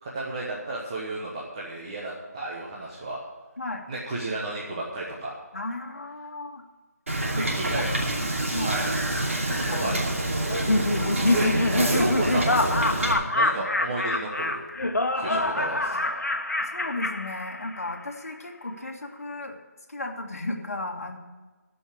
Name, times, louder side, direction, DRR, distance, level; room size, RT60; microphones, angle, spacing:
voice 1, 0.0-3.2 3.9-5.3 7.4-7.9 8.6-8.9 9.7-10.1 11.1-11.6 11.9-14.6 15.1-16.1, right 2 dB, 20° right, -5 dB, 1.2 m, -32 dB
voice 2, 5.5-6.6 7.3-7.5 8.5-8.8 9.4-10.0 11.0-11.7 13.0-13.1 13.5-13.6 15.3-15.4 15.9-16.0 16.7-19.6 19.9-21.2, left 2 dB, 60° left, 2 dB, 1.9 m, -35 dB
Wind / Boat Water vehicle, 7.1-13.1, right 1 dB, 55° right, 2.7 m, -27 dB
Laughter, 10.5-18.0, left 2 dB, 85° left, 1.2 m, -26 dB
13.5 x 5.6 x 8.5 m, 1.3 s
figure-of-eight pair, 170°, 9 cm